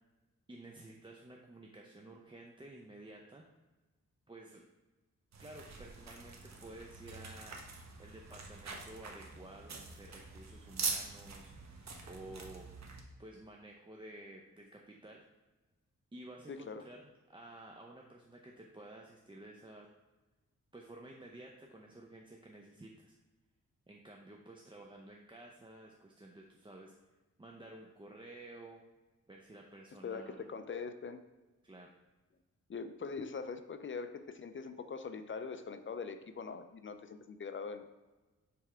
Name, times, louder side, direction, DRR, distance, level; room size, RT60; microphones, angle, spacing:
voice 1, 0.5-3.5 4.3-4.6 5.4-7.7 8.0-11.5 12.0-12.7 13.2-15.3 16.1-19.9 20.7-23.2 23.9-26.9 27.4-28.8 29.3-30.5 31.6-31.9, right 1 dB, 15° right, 0 dB, 0.6 m, -52 dB
sound 1, 5.3-13.0, right 4 dB, 60° right, 1.1 m, -44 dB
voice 2, 16.5-16.8 30.0-31.2 32.7-37.9, left 5 dB, 40° left, 9 dB, 0.5 m, -42 dB
7.6 x 3.4 x 4.8 m, 1.2 s
wide cardioid pair, 120°, 31 cm